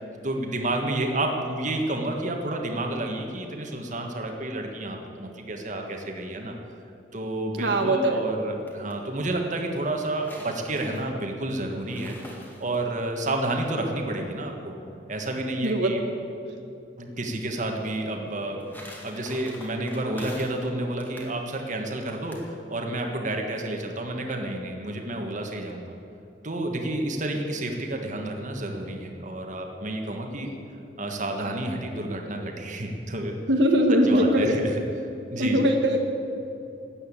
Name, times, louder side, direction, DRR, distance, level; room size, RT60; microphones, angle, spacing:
voice 1, 0.2-6.5 7.1-12.1 12.6-14.7 15.1-16.0 17.0-18.7 19.0-25.9 26.4-30.5 31.0-33.3 34.0-34.8 35.3-35.7, right 1 dB, 45° right, 2 dB, 1.5 m, -30 dB
voice 2, 7.6-8.2 15.6-15.9 30.3-30.5 33.5-34.5 35.4-36.0, equal, 80° right, 3 dB, 1.4 m, -21 dB
sound 1, 8.4-9.0 9.8-13.1 18.2-20.7 21.0-21.3 22.1-22.5, left 1 dB, 10° left, 2.1 m, -45 dB
13.5 x 8.9 x 8.6 m, 2.7 s
head